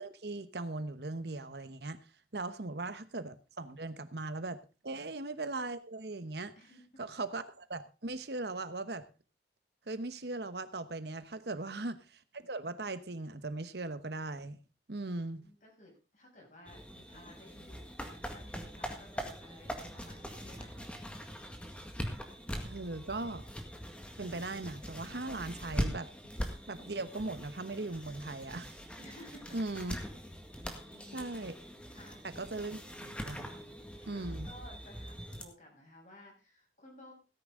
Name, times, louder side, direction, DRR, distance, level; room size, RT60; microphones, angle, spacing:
voice 1, 0.0-2.0 2.3-6.5 7.0-9.1 9.9-14.6 14.9-15.5 22.6-23.4 24.2-26.1 26.7-28.8 29.5-30.0 31.1-31.6 32.2-33.5 34.1-34.5, right 2 dB, 65° right, 12 dB, 1.1 m, -39 dB
voice 2, 6.6-7.0 15.0-20.8 29.0-29.6 30.5-31.3 31.9-32.3 32.6-32.7 34.0-37.1, left 1 dB, 45° left, 0 dB, 6.9 m, -56 dB
sound 1, 16.7-35.4, equal, 5° left, 1.8 m, -42 dB
17.5 x 10.0 x 3.8 m, 0.32 s
head